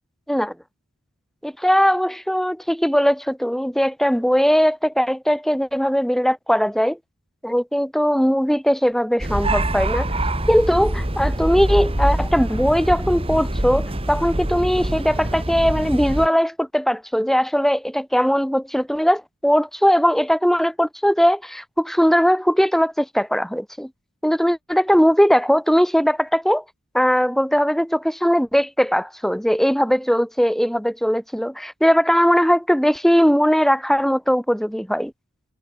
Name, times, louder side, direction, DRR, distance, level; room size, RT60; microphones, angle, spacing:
voice 1, 1.4-7.0 7.4-10.1 10.5-23.9 24.2-26.6 26.9-35.1, equal, ahead, 1.5 m, -19 dB
sound 1, 9.2-16.3, right 1 dB, 25° right, 2.2 m, -24 dB
head